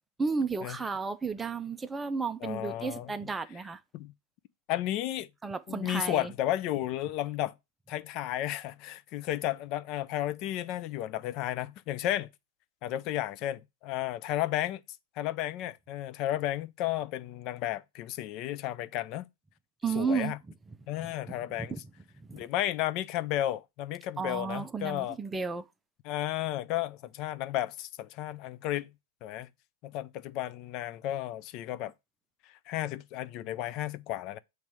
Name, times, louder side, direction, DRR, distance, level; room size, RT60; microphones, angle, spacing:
voice 1, 0.2-3.8 5.4-6.3 19.8-20.3 21.3-21.8 22.2-22.5 24.2-25.6, right 5 dB, 15° right, 0.6 m, -33 dB
voice 2, 2.4-3.1 3.9-4.1 4.7-5.3 5.7-7.5 7.9-12.3 12.8-14.8 15.2-19.3 19.9-20.4 20.9-21.7 22.3-25.2 26.0-28.9 29.2-29.5 29.8-31.9 32.7-34.4, left 13 dB, 45° left, 0.5 m, -33 dB
7.2 x 3.2 x 4.7 m
hypercardioid pair, 120°, 0 cm